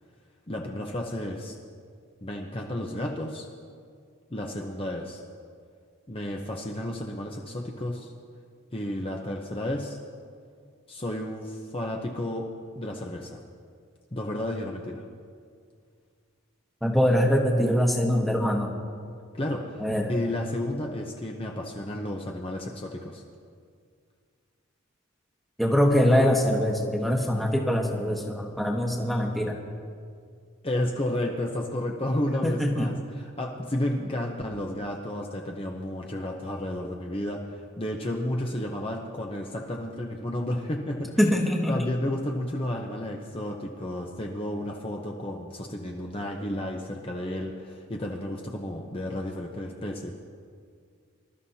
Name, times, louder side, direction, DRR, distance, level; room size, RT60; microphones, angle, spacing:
voice 1, 0.5-1.6 2.2-3.5 4.3-5.2 6.1-8.1 8.7-10.0 10.9-12.5 12.8-13.4 14.1-15.0 19.3-23.2 30.6-41.1 41.7-50.1, left 1 dB, 25° left, 0 dB, 0.8 m, -32 dB
voice 2, 16.8-18.7 19.8-20.1 25.6-29.6 32.4-32.9 41.2-41.8, equal, ahead, 0 dB, 1.2 m, -23 dB
25.0 x 13.0 x 2.8 m, 2.2 s
head